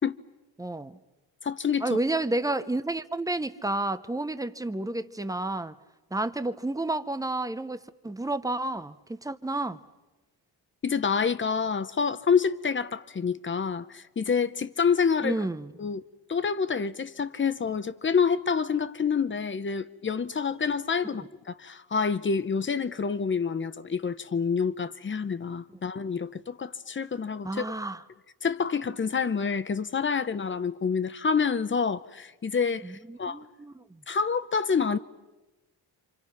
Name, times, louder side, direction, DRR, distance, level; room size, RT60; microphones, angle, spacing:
voice 1, 0.6-1.0 1.8-5.7 6.1-9.8 15.2-15.7 27.4-28.0 32.8-33.8, right 2 dB, 10° right, 0.7 m, -30 dB
voice 2, 1.4-1.8 10.8-15.4 15.8-16.0 16.3-27.7 28.4-33.4 34.1-35.0, left 6 dB, 25° left, 0.8 m, -27 dB
29.5 x 26.5 x 5.9 m
wide cardioid pair, 160°, 45 cm